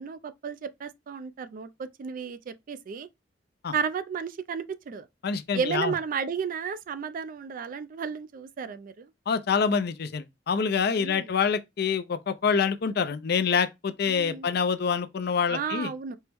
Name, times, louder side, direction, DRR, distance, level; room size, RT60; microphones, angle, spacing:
voice 1, 0.0-3.1 3.7-5.0 5.5-9.1 10.9-11.3 14.1-14.5 15.5-16.2, right 6 dB, 50° right, 0.3 m, -33 dB
voice 2, 5.2-5.9 9.3-15.9, left 6 dB, 60° left, 0.4 m, -26 dB
4.4 x 2.0 x 3.3 m
head